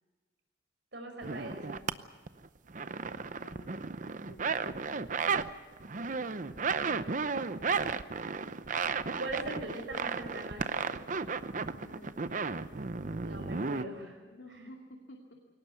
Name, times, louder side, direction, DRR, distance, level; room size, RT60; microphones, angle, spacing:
voice 1, 0.9-1.9 6.4-7.2 9.2-10.9 13.2-14.2 14.5-14.7, right 2 dB, 75° right, 4 dB, 5.7 m, -41 dB
sound 1, 1.2-1.9 2.3-5.5 5.8-13.8, right 5 dB, 45° right, 0.7 m, -34 dB
voice 2, 3.1-3.9 4.3-4.8 11.8-12.4 14.2-15.2, equal, 90° left, 1 dB, 2.5 m, -53 dB
22.5 x 19.0 x 8.2 m, 1.3 s
head